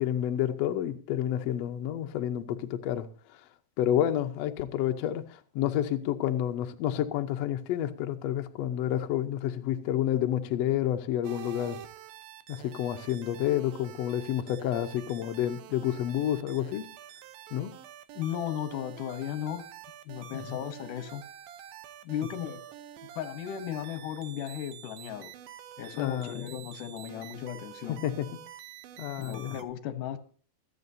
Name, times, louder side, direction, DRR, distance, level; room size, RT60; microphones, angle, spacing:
voice 1, 0.0-3.1 3.8-11.8 12.5-16.8 17.5-17.7 20.3-20.6 25.9-26.3 28.0-28.3 29.0-29.6, left 11 dB, 90° left, 1.4 m, -29 dB
sound 1, 11.2-29.6, right 10 dB, 90° right, 2.7 m, -47 dB
voice 2, 18.1-19.7 20.0-21.2 22.0-22.6 23.2-25.3 25.8-28.0 29.2-30.2, left 10 dB, 70° left, 2.4 m, -36 dB
24.0 x 8.5 x 2.7 m
omnidirectional pair, 4.1 m